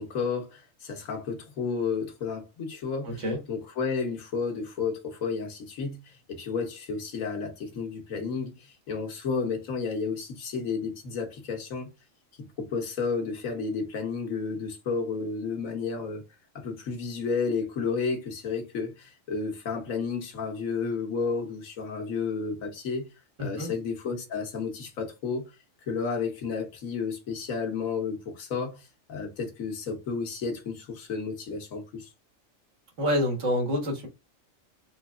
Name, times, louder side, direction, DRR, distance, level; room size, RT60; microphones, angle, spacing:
voice 1, 0.0-11.9 12.4-16.2 16.5-23.1 23.4-25.5 25.9-32.1, left 5 dB, 80° left, 1.4 m, -32 dB
voice 2, 3.0-3.4 23.4-23.7 33.0-34.1, left 1 dB, 65° right, 1.7 m, -27 dB
3.9 x 3.1 x 2.4 m
omnidirectional pair, 1.4 m